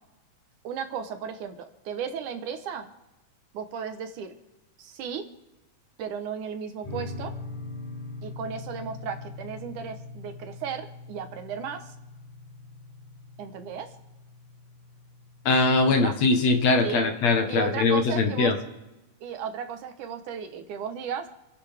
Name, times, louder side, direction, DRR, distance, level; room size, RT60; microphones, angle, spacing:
voice 1, 0.6-2.9 3.5-4.4 4.8-5.3 6.0-7.3 8.2-11.9 13.4-13.9 15.9-16.1 16.8-17.1 17.5-18.5 19.2-21.3, right 7 dB, 75° right, 7 dB, 2.6 m, -35 dB
sound 1, 6.8-15.8, left 3 dB, 85° left, 9.3 m, -42 dB
voice 2, 15.5-18.5, left 3 dB, 60° left, 5 dB, 2.4 m, -22 dB
29.5 x 10.5 x 3.5 m, 1.0 s
omnidirectional pair, 3.7 m